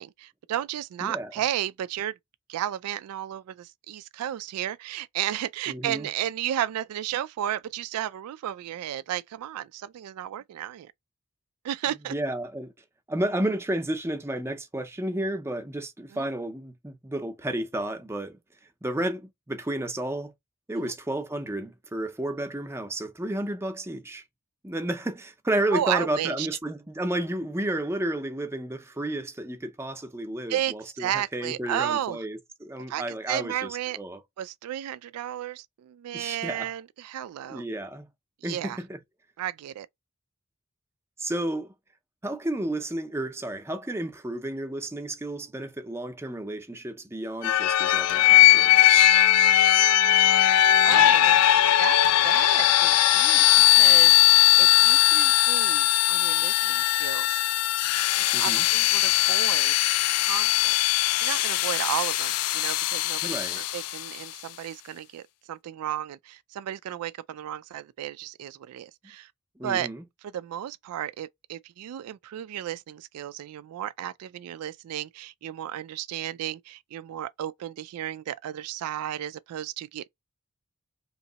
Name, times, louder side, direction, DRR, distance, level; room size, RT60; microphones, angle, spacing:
voice 1, 0.0-2.2 2.5-10.9 11.6-12.1 16.1-16.3 20.8-20.9 25.7-26.5 30.5-32.2 32.9-34.0 34.4-37.6 38.4-38.8 39.4-39.9 50.8-51.4 51.8-57.4 58.3-59.7 60.2-60.8 61.2-69.3 69.6-69.9 70.2-80.1, right 11 dB, 85° right, 0.3 m, -33 dB
voice 2, 5.7-6.1 12.1-12.7 13.1-18.4 18.8-20.3 20.7-24.2 24.6-34.2 36.1-36.7 37.5-38.1 38.4-39.0 41.2-41.7 42.2-49.0 58.3-58.6 63.2-63.6 69.6-70.0, right 1 dB, 10° right, 0.5 m, -32 dB
sound 1, 47.4-64.2, left 14 dB, 90° left, 0.4 m, -20 dB
3.0 x 2.8 x 3.9 m
head